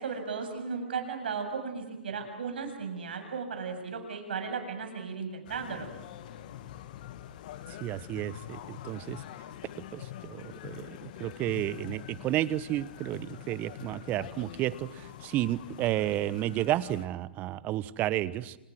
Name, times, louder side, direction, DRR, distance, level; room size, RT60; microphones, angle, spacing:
voice 1, 0.0-5.9, right 5 dB, 70° right, 6 dB, 7.3 m, -35 dB
sound 1, 5.5-17.1, left 11 dB, 55° left, 2.0 m, -45 dB
voice 2, 7.8-9.2 9.9-18.6, right 14 dB, 30° right, 17 dB, 1.2 m, -32 dB
28.5 x 28.5 x 6.3 m, 0.89 s
hypercardioid pair, 120°, 6 cm